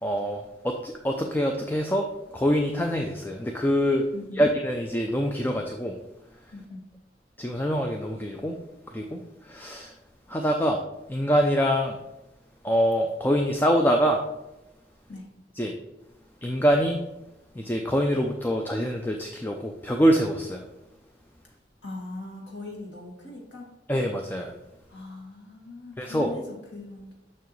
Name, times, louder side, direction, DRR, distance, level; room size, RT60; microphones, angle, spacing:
voice 1, 0.0-2.1 2.3-4.0 4.4-6.0 7.4-8.6 8.9-9.2 9.5-9.9 10.3-10.8 11.1-12.0 12.6-14.2 15.6-15.7 16.4-17.0 17.6-20.6 23.9-24.5 26.0-26.3, equal, 10° left, 3 dB, 0.4 m, -25 dB
voice 2, 21.8-23.7 24.9-27.1, left 2 dB, 80° left, -2 dB, 2.0 m, -40 dB
6.9 x 6.0 x 3.1 m, 0.94 s
head